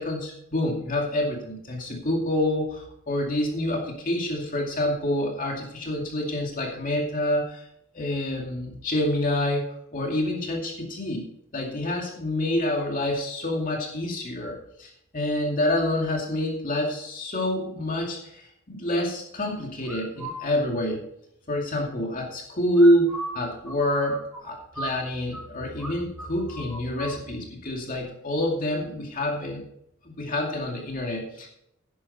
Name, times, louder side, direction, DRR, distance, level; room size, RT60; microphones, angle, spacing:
voice 1, 0.0-7.7 7.9-9.7 9.9-11.3 11.5-21.0 21.5-29.6 30.0-31.5, left 1 dB, 40° left, 0 dB, 2.4 m, -27 dB
sound 1, 19.9-20.4 22.7-25.5 25.8-25.9 26.2-27.2, right 2 dB, 5° right, 3.3 m, -36 dB
11.0 x 11.0 x 4.2 m, 0.74 s
head